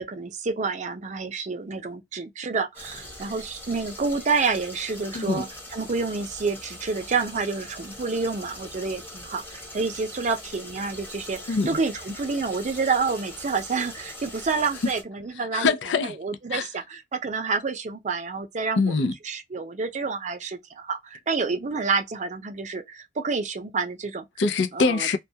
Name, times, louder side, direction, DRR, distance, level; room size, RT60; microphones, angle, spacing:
voice 1, 0.0-5.5 5.7-11.4 11.7-15.7 16.2-18.9 19.3-24.2 24.7-25.1, right 4 dB, 45° right, 0.5 m, -28 dB
sound 1, 2.7-15.0, left 1 dB, 10° left, 1.0 m, -41 dB
voice 2, 5.1-5.5 11.5-11.7 15.3-16.2 16.5-16.7 18.8-19.1 24.4-25.2, left 4 dB, 90° left, 0.5 m, -24 dB
2.3 x 2.2 x 2.7 m
head